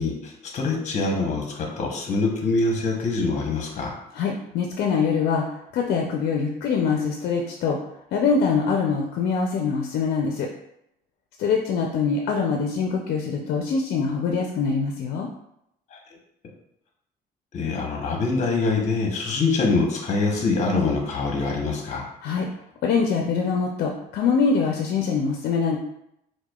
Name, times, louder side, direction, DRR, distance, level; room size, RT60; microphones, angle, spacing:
voice 1, 0.0-3.9 15.9-16.0 17.5-22.0, left 3 dB, 45° left, 0 dB, 0.9 m, -24 dB
voice 2, 4.1-5.5 5.7-7.8 8.1-10.5 11.4-15.3 22.2-22.5 22.8-25.8, left 5 dB, 70° left, 1 dB, 0.4 m, -24 dB
4.6 x 2.1 x 2.3 m, 0.77 s
cardioid pair, 110°, 17 cm